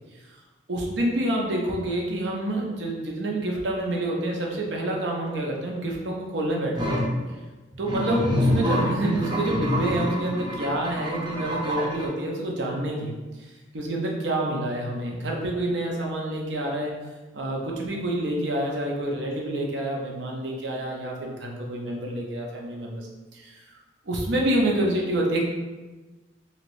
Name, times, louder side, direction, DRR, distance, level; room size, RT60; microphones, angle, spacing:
voice 1, 0.7-7.0 7.8-13.1 13.7-16.9 17.3-23.1 23.3-23.6 24.1-25.4, right 1 dB, 75° right, -1 dB, 0.6 m, -27 dB
sound 1, 6.8-7.1 7.7-12.1, equal, 25° right, 0.5 m, -26 dB
3.0 x 2.8 x 2.5 m, 1.2 s
head